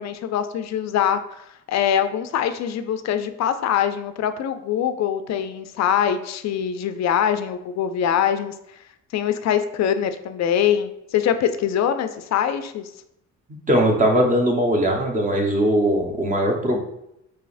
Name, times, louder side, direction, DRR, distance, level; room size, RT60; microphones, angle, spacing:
voice 1, 0.0-8.5 9.1-12.9, left 9 dB, 60° left, 10 dB, 0.5 m, -23 dB
voice 2, 13.7-16.8, right 1 dB, 25° right, 1 dB, 0.9 m, -20 dB
4.8 x 2.9 x 2.5 m, 0.80 s
cardioid pair, 90°, 30 cm